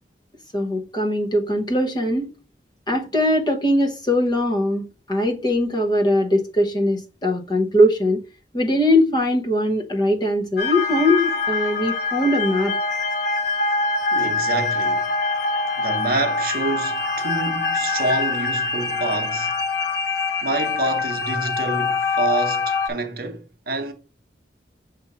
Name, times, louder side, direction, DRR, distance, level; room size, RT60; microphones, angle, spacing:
voice 1, 0.5-2.3 2.9-8.2 8.5-12.7, left 1 dB, 25° left, 0.8 m, -21 dB
sound 1, 10.6-22.9, left 4 dB, 55° left, 1.1 m, -24 dB
voice 2, 14.1-15.1 15.8-19.5 20.4-23.9, right 2 dB, 55° right, 0.9 m, -27 dB
6.9 x 2.6 x 5.4 m
head